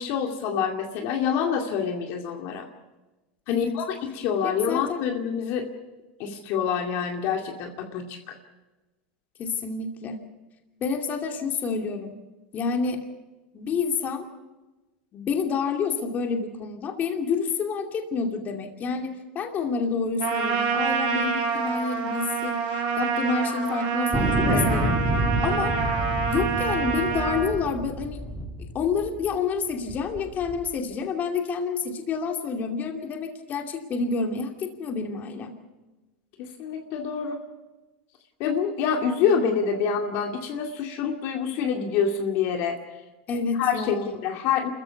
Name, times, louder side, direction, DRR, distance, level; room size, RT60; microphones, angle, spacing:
voice 1, 0.0-2.7 3.5-5.7 6.2-8.3 24.4-24.6 36.4-37.4 38.4-42.8 43.6-44.0 44.2-44.7, left 7 dB, 55° left, 3 dB, 2.3 m, -26 dB
voice 2, 4.4-5.0 9.4-10.2 10.8-12.2 12.5-13.0 13.5-14.3 15.1-25.0 25.4-25.7 26.3-28.2 28.7-35.5 43.3-44.2, left 5 dB, 30° left, 4 dB, 2.6 m, -28 dB
Trumpet, 20.2-27.5, right 5 dB, 60° right, 5.3 m, -27 dB
sound 1, 24.1-29.3 29.9-30.7, right 1 dB, ahead, 2.7 m, -28 dB
28.0 x 14.5 x 7.0 m, 1.1 s
supercardioid pair, 130°, 5 cm